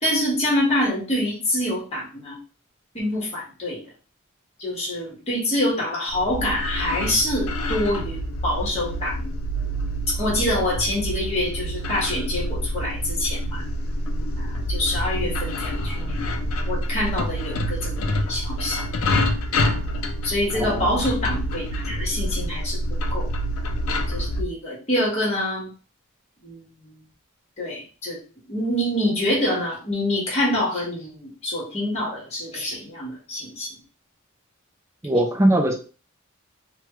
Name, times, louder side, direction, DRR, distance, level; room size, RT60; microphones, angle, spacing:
voice 1, 0.0-2.4 2.9-3.8 4.6-9.3 10.2-13.6 14.4-16.1 16.7-18.8 20.2-22.8 23.1-23.3 24.1-25.7 26.4-26.9 27.6-28.2 28.5-33.7, left 1 dB, 30° left, -4 dB, 1.3 m, -26 dB
sound 1, 6.1-24.4, equal, 70° left, 0.4 m, -27 dB
voice 2, 20.5-20.9 35.0-35.7, right 1 dB, 15° right, 3 dB, 0.4 m, -20 dB
3.1 x 2.3 x 3.0 m, 0.36 s
head